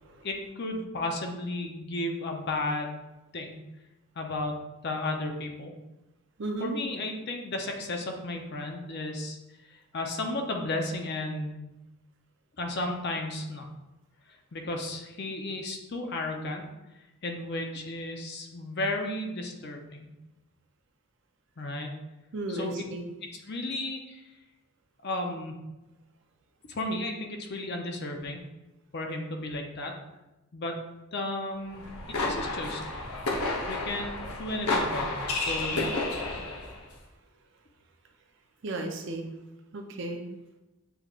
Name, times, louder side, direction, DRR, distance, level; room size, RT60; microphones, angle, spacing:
voice 1, 0.2-3.0 3.3-3.6 4.2-5.7 6.6-9.4 9.9-11.7 12.6-13.7 14.5-16.6 17.2-20.1 21.6-21.9 22.5-22.8 23.2-24.2 25.0-25.6 26.7-28.4 28.9-29.9 30.5-30.8 31.1-31.8 32.2-32.8 33.7-35.1 35.3-35.9, left 2 dB, 50° left, 3 dB, 0.6 m, -33 dB
voice 2, 6.4-6.7 22.3-23.0 38.6-39.3 39.7-40.2, right 2 dB, 55° right, 3 dB, 0.6 m, -34 dB
sound 1, 31.7-36.8, left 2 dB, 85° left, 0.9 m, -31 dB
7.1 x 3.1 x 2.4 m, 1.0 s
head